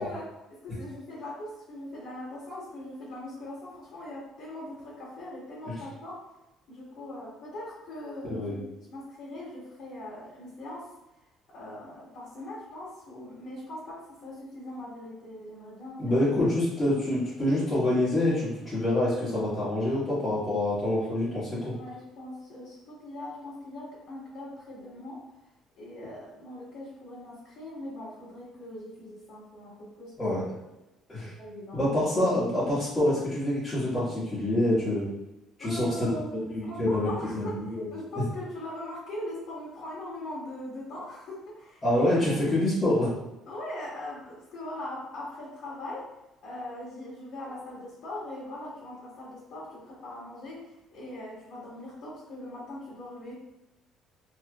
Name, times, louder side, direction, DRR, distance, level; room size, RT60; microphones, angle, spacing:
voice 1, 0.0-6.2 6.7-10.9 11.5-16.1 21.7-25.2 25.8-30.1 31.4-31.9 35.6-42.4 43.5-46.1 46.4-53.4, left 1 dB, 60° left, -9 dB, 1.5 m, -40 dB
voice 2, 8.2-8.6 16.0-21.7 30.2-30.4 31.1-31.3 31.7-35.1 35.6-36.1 36.3-37.8 38.2-38.3 41.8-43.1, left 1 dB, 20° left, -13 dB, 1.3 m, -26 dB
3.2 x 3.1 x 2.3 m, 0.97 s
cardioid pair, 140°, 0 cm